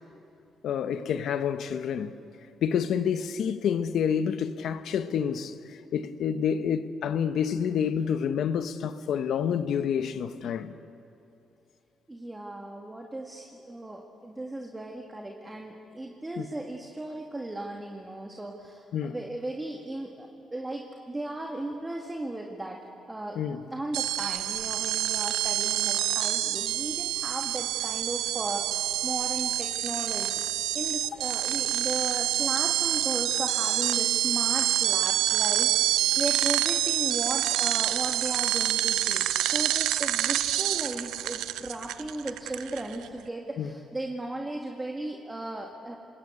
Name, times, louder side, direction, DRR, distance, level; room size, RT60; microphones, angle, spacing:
voice 1, 0.6-2.1 2.6-5.5 5.9-10.8 16.4-16.5 18.9-19.2 23.3-23.6 43.6-43.7, left 8 dB, 70° left, 1.1 m, -28 dB
voice 2, 12.1-22.8 23.1-30.4 30.7-46.0, right 1 dB, 15° right, 2.0 m, -36 dB
sound 1, 23.9-43.1, right 13 dB, 90° right, 0.6 m, -27 dB
26.5 x 21.0 x 8.3 m
cardioid pair, 90°, 0 cm